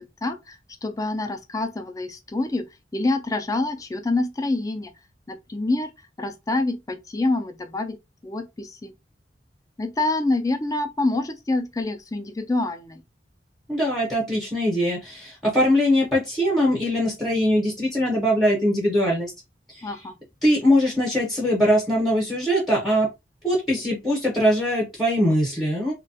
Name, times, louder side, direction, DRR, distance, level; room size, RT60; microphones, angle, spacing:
voice 1, 0.2-0.6 0.8-2.6 2.9-4.9 5.3-5.9 6.2-8.0 8.2-8.9 9.8-13.0 19.8-20.1, left 2 dB, 20° left, 0.4 m, -26 dB
voice 2, 13.7-19.3 19.7-20.0 20.4-23.1 23.4-25.9, equal, ahead, 0.8 m, -22 dB
3.0 x 2.2 x 2.6 m
head